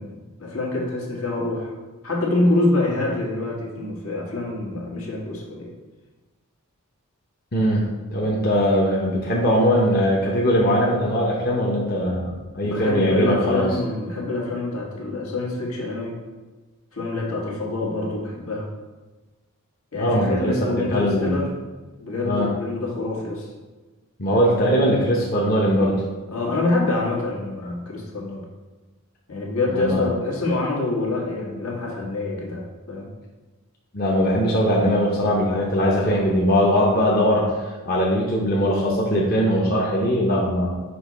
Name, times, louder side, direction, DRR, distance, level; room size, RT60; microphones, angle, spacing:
voice 1, 0.0-1.7 2.0-5.7 12.6-16.1 16.9-18.7 19.9-21.5 22.0-23.5 26.3-28.4 29.3-32.6 32.9-33.1, left 2 dB, 80° left, -2 dB, 1.5 m, -26 dB
voice 2, 7.5-13.7 20.0-21.3 22.2-22.5 24.2-26.0 29.7-30.1 33.9-37.4 37.9-40.7, equal, 45° left, -4 dB, 0.8 m, -20 dB
6.2 x 3.0 x 5.0 m, 1.2 s
head